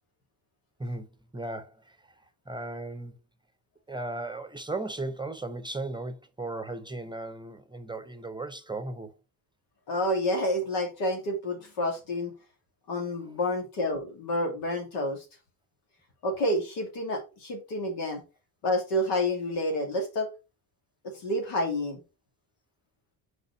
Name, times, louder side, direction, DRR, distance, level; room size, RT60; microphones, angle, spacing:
voice 1, 1.3-2.0 2.5-3.2 3.9-9.1, right 2 dB, 10° right, 0.8 m, -36 dB
voice 2, 9.9-12.3 12.9-15.2 16.2-18.2 18.6-20.3 21.0-22.0, left 1 dB, 80° left, 2.5 m, -29 dB
4.9 x 3.9 x 5.5 m
supercardioid pair, 80°, 41 cm